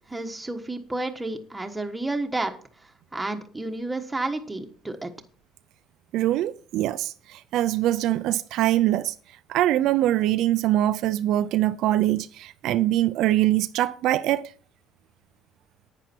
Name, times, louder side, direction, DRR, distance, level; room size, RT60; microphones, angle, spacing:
voice 1, 0.1-2.5 3.1-5.1, right 2 dB, 10° right, 1.4 m, -31 dB
voice 2, 6.1-9.1 9.5-14.5, right 14 dB, 70° right, 0.5 m, -23 dB
10.5 x 9.4 x 4.5 m
cardioid pair, 140°, 0 cm